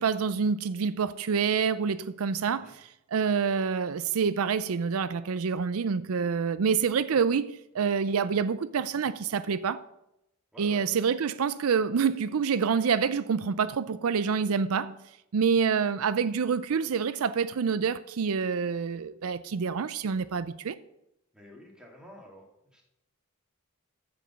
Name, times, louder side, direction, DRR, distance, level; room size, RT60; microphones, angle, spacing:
voice 1, 0.0-9.8 10.6-15.0 15.3-20.8, right 6 dB, 75° right, 0.5 m, -27 dB
voice 2, 2.4-2.7 10.5-10.9 21.3-22.5 22.7-22.8, left 1 dB, 5° right, 2.4 m, -49 dB
14.5 x 5.2 x 5.8 m
head